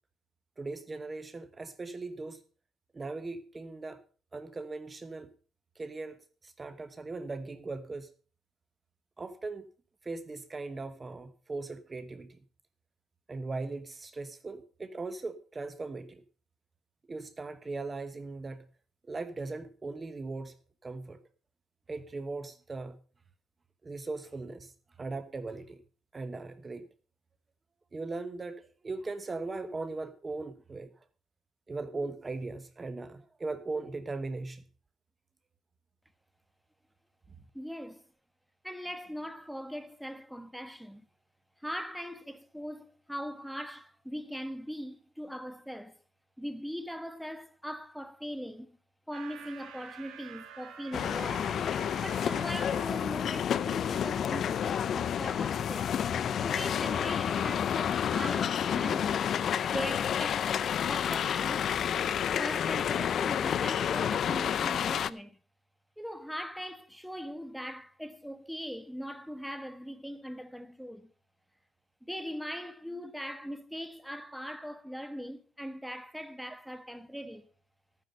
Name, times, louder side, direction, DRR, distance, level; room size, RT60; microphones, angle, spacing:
voice 1, 0.6-2.4 2.9-4.0 4.3-5.3 5.8-6.2 6.4-8.1 9.2-9.7 10.0-12.3 13.3-16.2 17.1-18.6 19.1-20.5 20.8-21.2 21.9-23.0 23.8-24.7 25.0-25.8 26.1-26.8 27.9-30.9 31.7-34.6, right 3 dB, 30° right, 1.1 m, -39 dB
voice 2, 37.5-38.0 38.6-41.0 41.6-46.0 46.4-48.8 49.1-51.6 52.0-55.9 56.4-59.2 59.7-60.5 60.9-61.7 62.4-65.4 66.0-71.1 72.0-77.5, equal, ahead, 1.2 m, -40 dB
sound 1, 49.1-52.9, right 8 dB, 85° right, 2.1 m, -49 dB
sound 2, 50.9-65.1, left 8 dB, 60° left, 0.5 m, -30 dB
13.5 x 9.4 x 5.4 m
cardioid pair, 90°, 0 cm